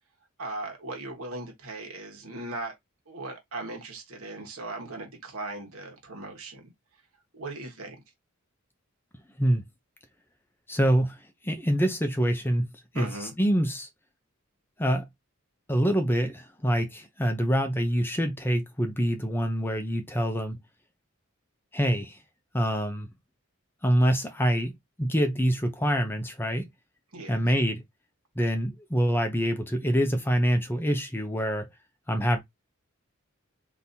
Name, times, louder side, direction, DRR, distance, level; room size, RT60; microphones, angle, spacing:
voice 1, 0.4-2.7 3.1-6.7 7.3-8.0 12.9-13.3 27.1-27.4, right 2 dB, 80° right, 1.3 m, -38 dB
voice 2, 10.7-11.2 11.4-12.7 12.9-13.9 14.8-15.0 15.7-20.6 21.7-22.2 22.5-23.1 23.8-24.7 25.0-26.7 27.3-27.8 28.4-31.7 32.1-32.4, equal, 10° left, 0.6 m, -25 dB
3.8 x 2.8 x 2.7 m
head